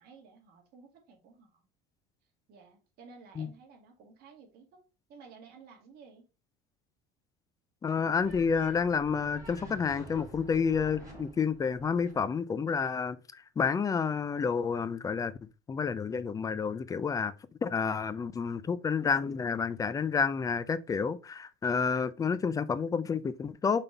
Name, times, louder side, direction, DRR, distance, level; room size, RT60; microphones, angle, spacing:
voice 1, 0.0-1.6 2.5-4.8 5.1-6.2, right 5 dB, 50° right, 2.4 m, -54 dB
voice 2, 7.8-13.2 13.6-15.3 15.7-17.3 17.6-23.8, left 6 dB, 20° left, 0.5 m, -29 dB
sound 1, 8.2-12.2, right 1 dB, 15° right, 3.4 m, -48 dB
5.8 x 5.3 x 4.0 m
cardioid pair, 155°, 20 cm